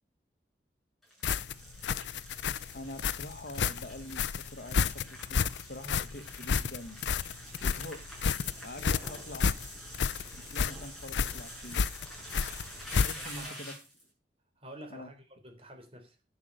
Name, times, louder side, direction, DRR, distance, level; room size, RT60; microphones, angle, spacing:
sound 1, 1.0-14.0, right 1 dB, ahead, 7.5 m, -47 dB
sound 2, 1.2-13.5, left 6 dB, 85° left, 0.5 m, -31 dB
voice 1, 2.7-7.0 7.6-8.0 8.6-9.6 10.3-11.8 13.0-13.7 14.9-15.1, left 1 dB, 55° left, 1.6 m, -45 dB
voice 2, 12.9-13.7 14.6-16.2, right 1 dB, 35° right, 4.0 m, -49 dB
10.5 x 9.4 x 6.4 m
head